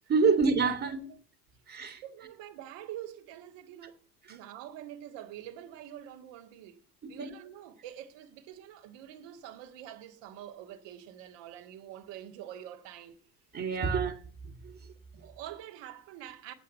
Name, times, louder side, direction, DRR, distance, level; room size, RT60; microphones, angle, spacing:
voice 1, 0.1-1.1 1.7-2.0 4.2-4.3 7.0-7.4 13.5-14.1 14.4-15.2, right 4 dB, 25° right, 2.0 m, -28 dB
voice 2, 2.0-4.0 4.3-6.8 7.1-13.2 13.8-13.9 15.2-16.5, right 11 dB, 60° right, 2.0 m, -46 dB
8.5 x 7.7 x 8.3 m
hypercardioid pair, 85°, 49 cm